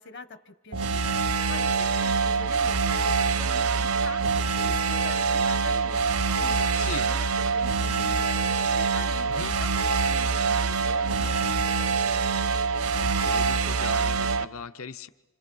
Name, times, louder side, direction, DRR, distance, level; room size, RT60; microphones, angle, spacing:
voice 1, 0.0-12.3, left 4 dB, 50° left, 11 dB, 1.1 m, -44 dB
sound 1, 0.7-14.4, right 5 dB, 70° right, 0.7 m, -25 dB
voice 2, 6.8-7.1 9.3-9.6 12.9-15.1, left 5 dB, 65° left, 12 dB, 0.8 m, -38 dB
29.0 x 27.0 x 5.5 m, 1.2 s
head